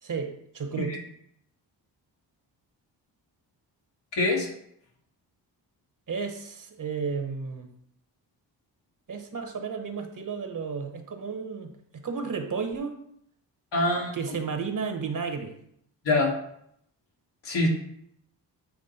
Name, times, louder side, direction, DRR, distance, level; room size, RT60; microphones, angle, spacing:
voice 1, 0.0-1.0 6.1-7.7 9.1-13.0 14.1-15.5, right 5 dB, 45° right, 5 dB, 1.2 m, -33 dB
voice 2, 4.1-4.5 13.7-14.1 16.0-16.3 17.4-17.7, left 2 dB, 75° left, -1 dB, 1.7 m, -24 dB
8.5 x 3.0 x 4.3 m, 0.71 s
supercardioid pair, 55°, 44 cm